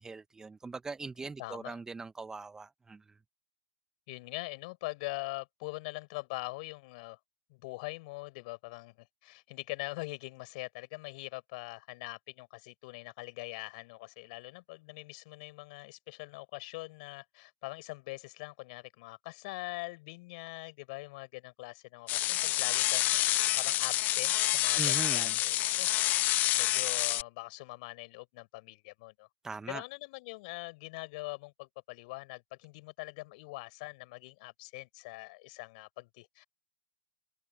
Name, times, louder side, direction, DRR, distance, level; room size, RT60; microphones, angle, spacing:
voice 1, 0.0-3.0 24.8-25.3 29.4-29.8, right 4 dB, 10° right, 1.1 m, -40 dB
voice 2, 1.4-1.8 4.1-7.2 7.5-29.3 29.7-36.5, left 24 dB, 45° left, 6.0 m, -43 dB
sound 1, 22.1-27.2, left 16 dB, 30° left, 0.4 m, -28 dB
figure-of-eight pair, 105°, 6 cm